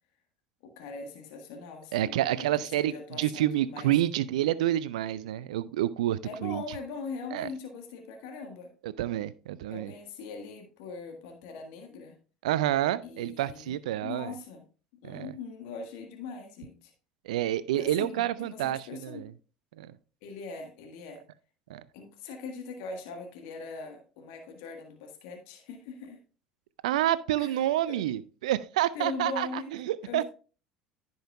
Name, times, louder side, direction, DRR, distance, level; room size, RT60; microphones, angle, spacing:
voice 1, 0.6-2.5 2.8-3.9 6.2-8.7 9.7-12.1 13.0-13.8 14.0-14.6 15.0-16.9 17.7-19.2 20.2-21.2 21.9-26.2 27.4-27.6 27.9-28.0 28.9-29.7 30.0-30.2, left 4 dB, 60° left, 1.6 m, -41 dB
voice 2, 1.9-6.6 7.3-7.5 8.8-9.9 12.4-14.3 15.0-15.3 17.2-19.3 19.8-19.9 21.7-21.8 26.8-30.2, right 13 dB, 70° right, 0.4 m, -28 dB
15.0 x 5.4 x 2.3 m
figure-of-eight pair, 65°, 4 cm